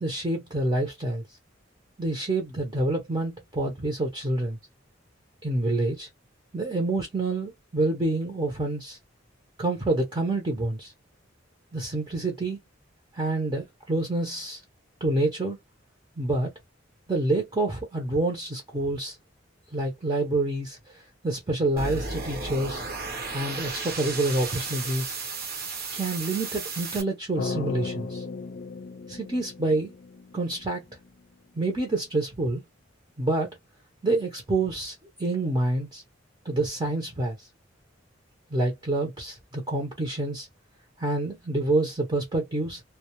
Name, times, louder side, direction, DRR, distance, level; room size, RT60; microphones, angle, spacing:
voice 1, 0.0-1.2 2.0-4.6 5.4-6.1 6.5-9.0 9.6-10.9 11.7-12.6 13.1-14.6 15.0-15.6 16.2-16.5 17.1-19.2 19.7-20.8 21.2-22.9 23.3-25.2 25.9-28.2 29.1-29.9 30.3-30.8 31.5-32.6 33.2-33.6 34.0-36.0 36.4-37.4 38.5-40.5 41.0-42.8, right 2 dB, 25° right, 0.7 m, -27 dB
sound 1, 21.8-27.0, right 4 dB, 55° right, 0.8 m, -34 dB
sound 2, 27.4-31.5, left 4 dB, 65° left, 0.5 m, -36 dB
2.2 x 2.2 x 2.9 m
head